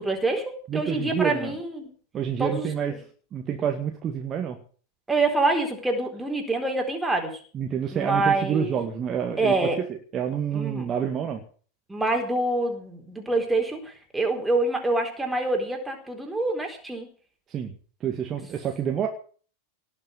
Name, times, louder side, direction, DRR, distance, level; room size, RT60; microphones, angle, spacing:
voice 1, 0.0-1.9 2.4-3.0 5.1-7.4 7.9-8.8 9.4-9.8 10.5-10.9 11.9-17.1, right 2 dB, 5° right, 2 dB, 4.0 m, -26 dB
voice 2, 0.7-1.5 2.1-2.9 3.3-4.6 7.5-9.7 10.1-11.4 17.5-17.7 18.0-19.1, right 8 dB, 25° right, 3 dB, 2.0 m, -28 dB
18.5 x 6.7 x 9.6 m, 0.43 s
figure-of-eight pair, 90°, 0 cm